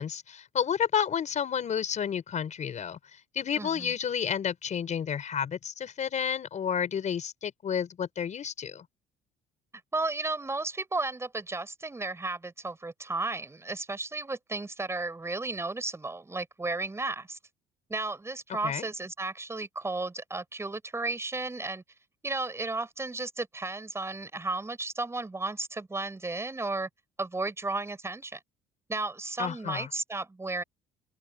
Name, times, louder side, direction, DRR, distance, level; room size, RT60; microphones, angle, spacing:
voice 1, 0.0-3.0 3.3-8.9 18.6-18.9 29.4-29.9, left 8 dB, 45° left, 5.6 m, -31 dB
voice 2, 3.6-3.9 9.9-17.4 17.9-21.8 22.2-26.9 27.2-28.4 28.9-30.6, right 2 dB, 15° right, 6.4 m, -34 dB
open air
cardioid pair, 110°, 17 cm